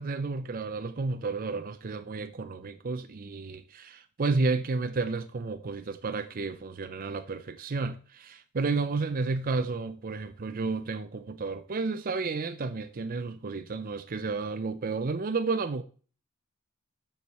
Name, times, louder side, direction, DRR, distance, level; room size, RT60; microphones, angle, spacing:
voice 1, 0.0-15.8, right 3 dB, 40° right, 0.5 m, -31 dB
13.5 x 4.7 x 4.2 m
head